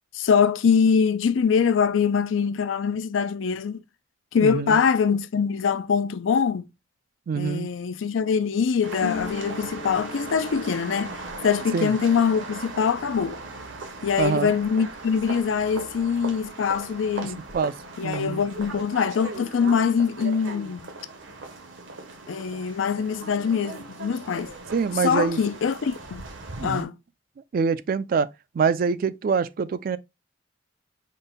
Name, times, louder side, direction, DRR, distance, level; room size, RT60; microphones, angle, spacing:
voice 1, 0.1-3.8 4.3-6.7 7.3-11.1 11.4-13.4 14.0-17.4 18.0-20.8 22.3-24.5 24.9-26.2 26.6-26.9, left 6 dB, 80° left, 0.4 m, -23 dB
voice 2, 4.4-4.8 7.3-7.7 11.7-11.9 14.2-14.5 17.5-17.7 18.0-18.4 24.7-25.4 26.6-26.9 27.5-28.3 28.6-30.0, right 5 dB, 50° right, 0.3 m, -24 dB
sound 1, 8.8-26.8, right 3 dB, 75° right, 1.0 m, -39 dB
Harp, 9.0-16.5 16.7-17.8 18.1-18.8, left 3 dB, 55° left, 0.8 m, -42 dB
5.2 x 2.2 x 3.9 m
head